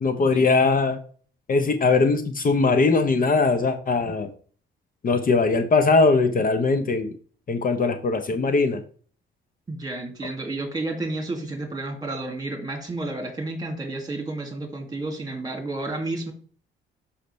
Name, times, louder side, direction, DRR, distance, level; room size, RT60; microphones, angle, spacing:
voice 1, 0.0-1.0 1.5-4.3 5.0-7.1 7.5-8.8, left 4 dB, 45° left, 8 dB, 0.9 m, -20 dB
voice 2, 9.7-16.3, right 2 dB, 20° right, 4 dB, 2.1 m, -31 dB
6.4 x 5.8 x 3.2 m, 0.43 s
cardioid pair, 90°, 20 cm